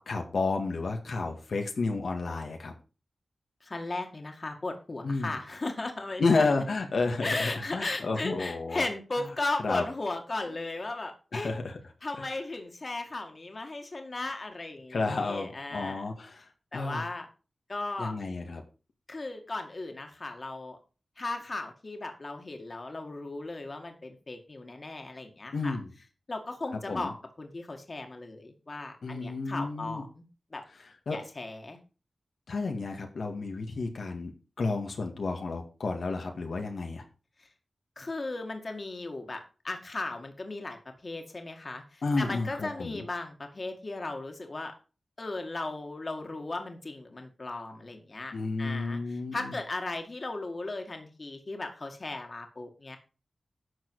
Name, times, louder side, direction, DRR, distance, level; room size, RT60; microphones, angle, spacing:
voice 1, 0.1-2.7 5.0-5.4 6.2-8.9 9.6-9.8 11.3-11.8 12.2-12.3 14.9-16.5 16.7-17.0 18.0-18.6 25.5-25.9 26.9-27.1 29.0-30.0 30.8-31.2 32.5-37.0 42.0-43.0 48.3-49.5, left 3 dB, 85° left, 3 dB, 2.0 m, -31 dB
voice 2, 3.6-6.5 7.2-11.5 12.0-16.0 16.7-17.3 17.7-18.1 19.1-20.8 21.2-25.8 26.3-27.1 27.4-30.2 30.5-30.6 31.1-31.8 37.4-37.5 38.0-39.4 39.6-40.8 41.0-44.7 45.2-48.3 48.6-53.0, left 2 dB, 45° left, 4 dB, 2.2 m, -36 dB
12.0 x 6.8 x 4.8 m, 0.33 s
wide cardioid pair, 105°, 0 cm